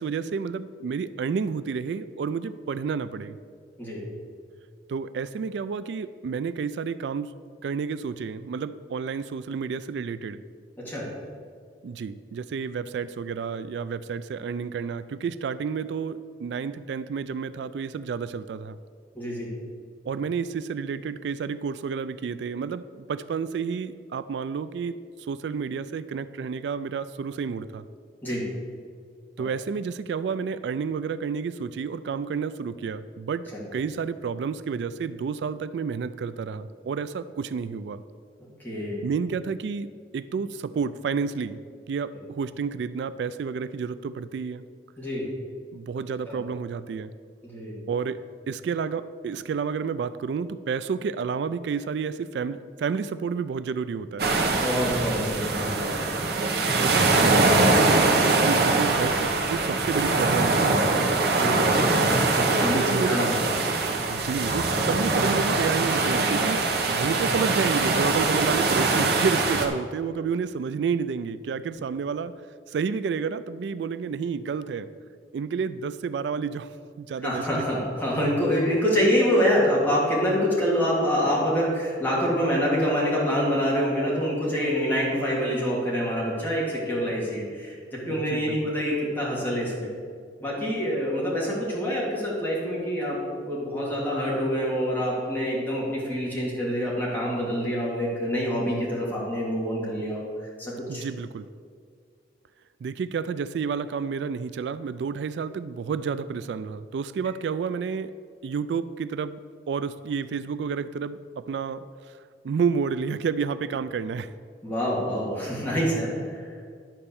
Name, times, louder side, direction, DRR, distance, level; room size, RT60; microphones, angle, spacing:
voice 1, 0.0-3.4 4.9-7.3 7.6-10.4 11.8-18.8 20.1-27.8 29.4-38.0 39.0-41.6 41.9-44.6 45.7-47.1 47.9-48.2 48.5-54.3 56.8-60.9 62.7-63.2 64.1-66.6 66.9-72.3 72.7-74.9 75.3-77.4 88.1-88.7 100.9-101.5 102.8-108.1 108.4-109.4 109.7-112.2 112.4-114.3, right 6 dB, 75° right, 14 dB, 0.3 m, -30 dB
voice 2, 19.1-19.5 28.2-28.4 29.4-29.5 33.5-33.6 38.6-39.0 45.0-45.2 46.3-46.4 47.4-47.7 54.5-56.0 61.3-61.5 62.3-63.5 77.2-89.9 90.4-93.2 93.4-100.2 100.6-101.0 114.6-116.4, equal, 10° left, -6 dB, 2.6 m, -26 dB
sound 1, 54.2-69.7, right 3 dB, 60° right, 1.1 m, -23 dB
11.0 x 4.3 x 7.0 m, 2.1 s
head